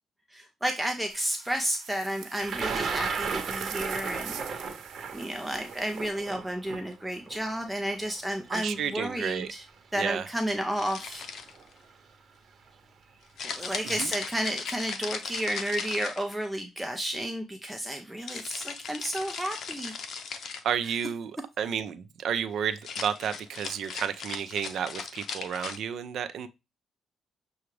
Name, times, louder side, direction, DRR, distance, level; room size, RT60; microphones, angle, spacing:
voice 1, 0.3-4.7 5.1-9.6 9.9-11.2 13.4-20.0, right 1 dB, 5° right, 0.7 m, -32 dB
sound 1, 1.1-6.1, right 8 dB, 85° right, 1.0 m, -44 dB
Thunder, 2.4-8.4 9.3-9.4 10.6-10.8 11.1-11.6, right 5 dB, 50° right, 1.0 m, -34 dB
voice 2, 8.5-9.5 10.0-10.3 14.0-14.1 20.6-26.5, right 8 dB, 70° right, 0.5 m, -31 dB
sound 2, 10.8-11.7 13.4-16.6 18.3-20.7 22.7-25.8, left 5 dB, 60° left, 0.7 m, -38 dB
6.9 x 2.4 x 3.1 m
cardioid pair, 90°, 0 cm